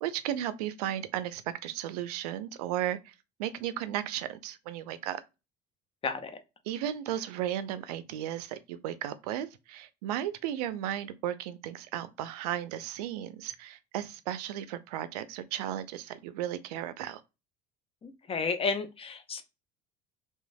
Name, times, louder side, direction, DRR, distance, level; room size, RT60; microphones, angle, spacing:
voice 1, 0.0-3.1 3.4-5.2 6.7-17.2, right 11 dB, 85° right, 0.4 m, -35 dB
voice 2, 18.0-19.4, left 4 dB, 30° left, 0.6 m, -32 dB
2.9 x 2.3 x 2.5 m
supercardioid pair, 80°, 19 cm